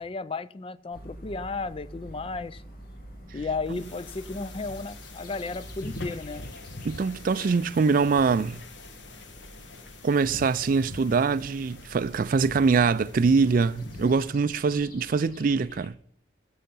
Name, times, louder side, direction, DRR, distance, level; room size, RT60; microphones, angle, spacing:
voice 1, 0.0-2.6 3.3-6.4, left 3 dB, 30° left, 0.4 m, -34 dB
sound 1, 0.9-15.9, equal, 50° left, 2.1 m, -47 dB
sound 2, 3.7-14.4, left 2 dB, 80° left, 1.4 m, -44 dB
voice 2, 6.8-8.6 10.0-15.9, right 4 dB, 50° right, 0.4 m, -23 dB
15.5 x 5.6 x 5.5 m
head